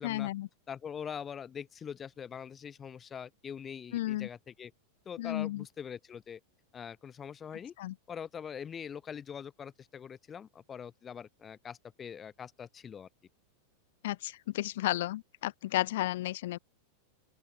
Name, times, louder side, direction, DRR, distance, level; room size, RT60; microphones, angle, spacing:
voice 1, 0.0-0.5 3.9-4.3 5.2-5.6 7.8-7.9 14.0-16.6, left 15 dB, 55° left, 0.4 m, -33 dB
voice 2, 0.7-4.7 5.0-6.4 6.7-7.7 8.1-13.1, left 7 dB, 20° left, 1.0 m, -43 dB
open air
figure-of-eight pair, 90°, 0 cm